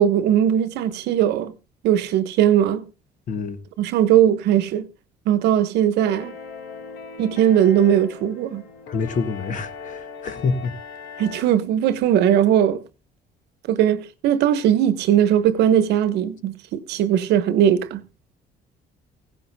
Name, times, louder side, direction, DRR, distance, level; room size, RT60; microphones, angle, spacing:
voice 1, 0.0-1.5 1.8-2.8 3.8-4.9 5.3-6.3 7.2-8.6 11.2-12.8 13.7-18.0, right 10 dB, 80° right, 1.1 m, -19 dB
voice 2, 3.3-3.6 8.9-10.7, left 4 dB, 50° left, 1.3 m, -26 dB
sound 1, 6.0-11.4, left 5 dB, 80° left, 1.6 m, -39 dB
16.0 x 15.5 x 2.3 m
cardioid pair, 110°, 17 cm